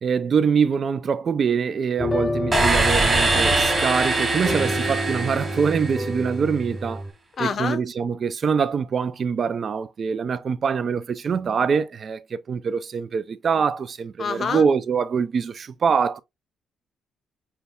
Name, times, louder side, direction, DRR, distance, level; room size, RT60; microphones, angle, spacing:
voice 1, 0.0-7.0 7.4-16.2, right 6 dB, 50° right, 0.4 m, -24 dB
sound 1, 2.0-7.1, left 1 dB, 10° left, 0.6 m, -29 dB
sound 2, 2.5-6.3, right 2 dB, 25° right, 1.4 m, -23 dB
voice 2, 7.4-7.8 14.2-14.7, left 6 dB, 50° left, 0.6 m, -26 dB
5.6 x 2.2 x 2.3 m
cardioid pair, 90°, 0 cm